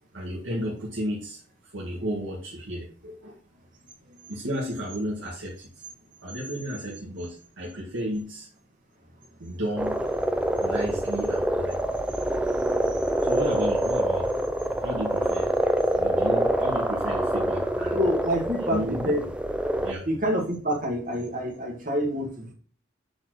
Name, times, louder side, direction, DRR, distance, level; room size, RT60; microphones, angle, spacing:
voice 1, 0.1-3.4 4.3-5.9 6.2-8.5 9.4-10.0 10.6-12.0 13.2-14.3 14.8-15.5 15.9-18.0 18.7-19.0 19.8-20.1, equal, 70° right, -5 dB, 2.2 m, -33 dB
sound 1, 9.8-19.9, right 1 dB, 5° right, 0.5 m, -26 dB
voice 2, 17.9-19.2 20.1-22.5, equal, 40° right, 1 dB, 2.0 m, -27 dB
7.8 x 4.2 x 6.5 m, 0.43 s
head